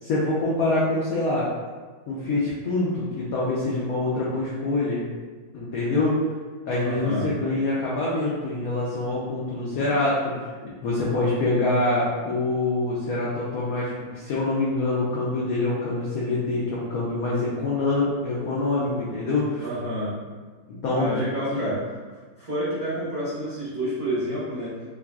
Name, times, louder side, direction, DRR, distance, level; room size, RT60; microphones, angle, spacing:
voice 1, 0.0-1.5 2.1-5.0 5.5-6.2 6.7-10.3 10.6-19.7 20.8-21.1 21.5-21.7, left 2 dB, 90° left, -6 dB, 0.7 m, -25 dB
voice 2, 6.8-7.3 19.6-20.1 20.9-21.8 22.4-24.8, equal, 70° right, -11 dB, 0.5 m, -29 dB
3.5 x 2.3 x 2.3 m, 1.4 s
omnidirectional pair, 2.1 m